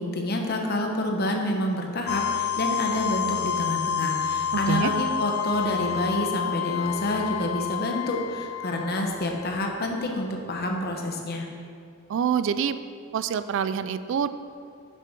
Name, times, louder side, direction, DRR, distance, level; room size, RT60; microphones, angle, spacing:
voice 1, 0.0-11.5, left 1 dB, 50° left, 2 dB, 0.9 m, -28 dB
sound 1, 2.1-9.8, left 8 dB, 90° left, 0.4 m, -29 dB
voice 2, 12.1-12.8 13.1-14.3, right 7 dB, 65° right, 12 dB, 0.3 m, -25 dB
7.0 x 6.0 x 4.5 m, 2.3 s
head